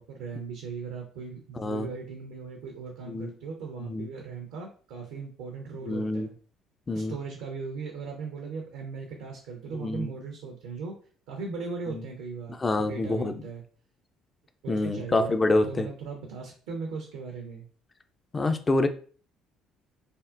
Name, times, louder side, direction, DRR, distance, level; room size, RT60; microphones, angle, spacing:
voice 1, 0.0-6.3 6.9-11.0 11.3-13.6 14.6-17.7, right 5 dB, 65° right, 2 dB, 0.5 m, -38 dB
voice 2, 1.6-1.9 3.1-3.3 3.9-4.1 5.9-6.3 6.9-7.1 9.8-10.1 11.9-12.0 12.6-13.4 14.7-15.9 18.3-18.9, left 2 dB, 30° left, 8 dB, 0.4 m, -26 dB
3.4 x 2.1 x 2.4 m, 0.42 s
figure-of-eight pair, 50°, 0 cm